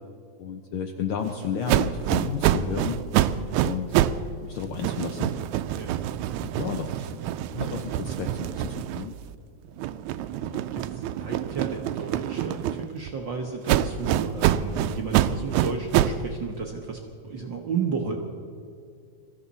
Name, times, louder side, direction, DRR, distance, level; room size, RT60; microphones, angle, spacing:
voice 1, 0.4-3.0 3.6-4.0 4.4-5.4 6.4-7.2 7.5-9.1 10.4-10.6, left 7 dB, 75° left, 5 dB, 1.2 m, -32 dB
sound 1, 1.7-4.3 4.6-9.3 9.8-13.1 13.7-16.3, right 12 dB, 80° right, 1.8 m, -26 dB
voice 2, 10.7-18.2, right 5 dB, 60° right, 1 dB, 1.2 m, -33 dB
23.5 x 14.5 x 4.1 m, 2.5 s
omnidirectional pair, 3.4 m